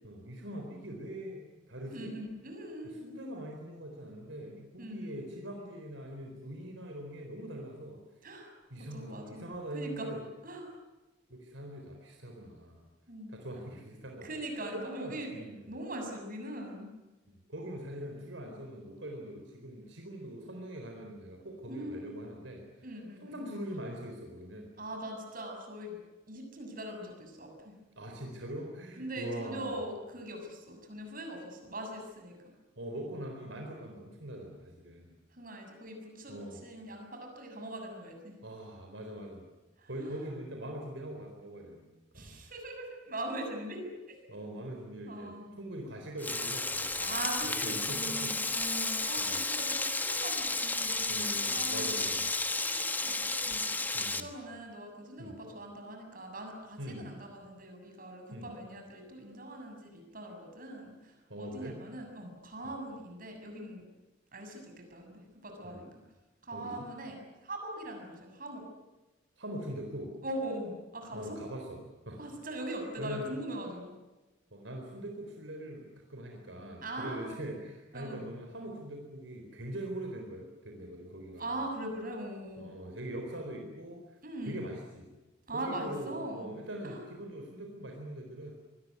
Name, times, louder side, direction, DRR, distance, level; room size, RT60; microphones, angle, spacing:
voice 1, 0.0-2.1 2.8-8.0 8.7-10.2 11.3-12.9 13.3-14.3 14.7-15.7 17.5-22.9 23.2-24.7 28.0-29.8 32.8-35.1 36.3-36.6 38.4-39.5 39.9-42.4 44.3-45.3 45.6-47.1 47.4-48.4 49.2-49.4 51.1-52.3 53.9-54.3 55.2-55.4 56.8-57.1 58.3-58.5 61.3-61.8 62.6-62.7 65.6-65.8 66.5-66.9 69.4-70.2 71.1-72.3 73.0-73.4 74.5-81.6 82.6-85.1 85.5-88.5, right 1 dB, 70° right, 2 dB, 4.3 m, -42 dB
voice 2, 1.9-3.2 4.8-5.1 8.2-8.5 8.8-9.4 9.7-10.1 10.4-10.7 13.1-13.3 14.2-16.9 21.7-22.2 22.8-23.4 24.8-26.0 26.3-27.8 29.0-32.4 35.3-38.4 39.8-40.2 42.1-44.2 45.1-45.5 47.0-52.2 52.6-63.8 64.3-65.9 66.4-68.6 70.2-71.4 72.2-73.9 76.8-77.5 77.9-78.2 81.4-82.7 84.2-84.7 85.5-86.5 86.8-87.0, right 1 dB, 45° right, 3 dB, 7.0 m, -41 dB
Frying (food), 46.2-54.2, left 3 dB, 10° left, 1.4 m, -32 dB
25.0 x 20.5 x 9.8 m, 1.1 s
head